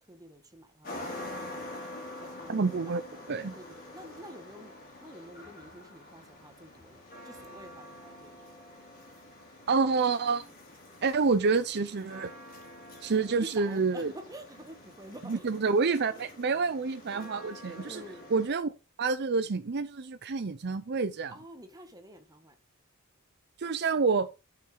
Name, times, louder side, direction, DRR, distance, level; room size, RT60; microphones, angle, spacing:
voice 1, 0.0-1.8 2.2-4.7 5.0-8.6 13.2-15.5 16.1-16.2 17.8-18.2 21.3-22.6, right 1 dB, 15° right, 1.6 m, -49 dB
sound 1, 0.8-18.5, left 1 dB, 40° left, 4.0 m, -46 dB
voice 2, 2.5-3.0 3.3-3.5 9.7-10.5 11.0-12.3 13.0-14.1 15.2-18.0 18.3-18.7 19.0-21.3 23.6-24.3, right 4 dB, 50° right, 0.6 m, -28 dB
8.6 x 5.9 x 4.9 m
head